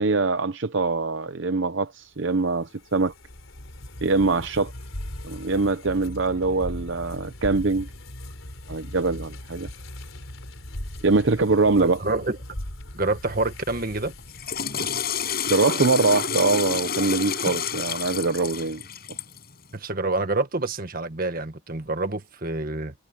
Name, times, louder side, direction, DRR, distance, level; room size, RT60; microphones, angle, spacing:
voice 1, 0.0-3.1 4.0-4.7 5.2-7.9 8.7-9.7 11.0-12.0 15.4-18.8, right 3 dB, 60° right, 0.7 m, -23 dB
sound 1, 2.2-15.6, left 1 dB, 85° left, 3.8 m, -39 dB
voice 2, 11.8-12.4 12.9-14.1 19.7-22.9, right 2 dB, 45° right, 1.7 m, -27 dB
Water / Toilet flush, 14.2-19.4, left 7 dB, 50° left, 6.5 m, -29 dB
head